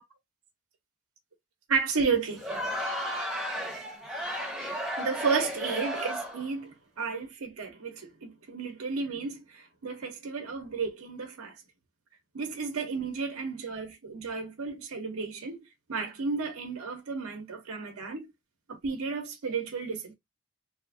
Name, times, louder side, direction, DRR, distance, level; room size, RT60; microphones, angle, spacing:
voice 1, 1.7-2.5 5.0-11.5 12.3-15.6 15.9-18.3 18.7-20.1, right 5 dB, 90° right, 0.7 m, -32 dB
Crowd, 2.3-6.5, equal, ahead, 0.6 m, -34 dB
2.7 x 2.4 x 2.4 m
head